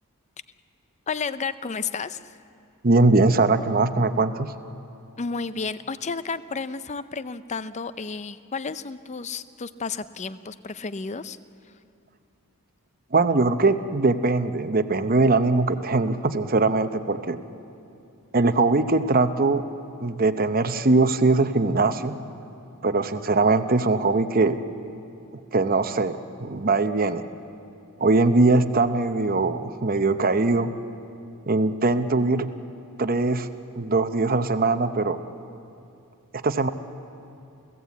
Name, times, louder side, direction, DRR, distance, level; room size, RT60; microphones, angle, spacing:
voice 1, 1.1-2.4 5.2-11.4, left 5 dB, 30° left, 14 dB, 0.5 m, -32 dB
voice 2, 2.8-4.5 13.1-17.4 18.3-19.6 20.0-22.2 22.8-24.6 25.5-27.2 28.0-30.7 31.5-32.5 33.0-33.5 33.8-35.2 36.3-36.7, right 3 dB, 40° right, 10 dB, 0.8 m, -21 dB
29.5 x 16.5 x 8.3 m, 2.7 s
head